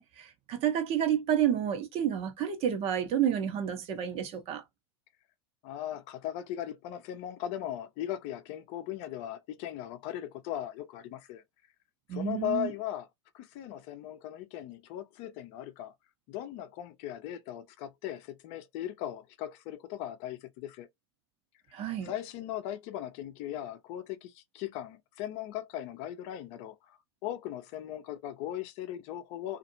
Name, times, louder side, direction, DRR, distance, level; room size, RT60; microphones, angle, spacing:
voice 1, 0.0-4.6 12.1-12.7 21.7-22.1, right 9 dB, 45° right, 0.9 m, -30 dB
voice 2, 5.6-11.4 12.1-13.1 13.3-15.9 16.3-20.9 22.0-29.6, left 12 dB, 50° left, 0.6 m, -38 dB
2.5 x 2.5 x 2.7 m
hypercardioid pair, 100°, 14 cm